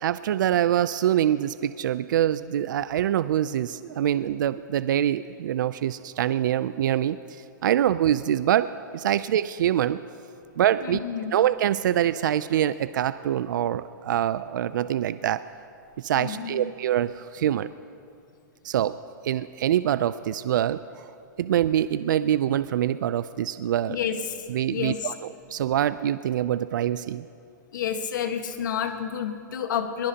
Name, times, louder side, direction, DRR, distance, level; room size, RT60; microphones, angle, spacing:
voice 1, 0.0-10.0 10.6-11.0 11.3-15.4 16.0-17.7 18.6-21.1 21.4-24.0 24.5-25.1 25.5-27.3, right 11 dB, 75° right, 14 dB, 0.4 m, -25 dB
voice 2, 10.8-11.4 16.1-16.7 23.9-25.1 27.7-30.1, left 8 dB, 70° left, 6 dB, 1.4 m, -30 dB
22.0 x 19.5 x 2.9 m, 2.6 s
hypercardioid pair, 155°, 11 cm